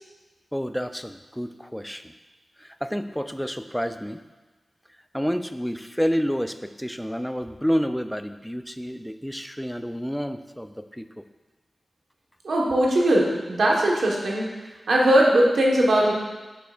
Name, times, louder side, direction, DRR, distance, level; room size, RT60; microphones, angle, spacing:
voice 1, 0.5-2.1 2.6-4.2 5.1-11.1, equal, ahead, 9 dB, 0.4 m, -29 dB
voice 2, 12.4-16.1, right 1 dB, 85° right, -2 dB, 1.2 m, -20 dB
8.0 x 5.8 x 2.4 m, 1.2 s
cardioid pair, 55°, 0 cm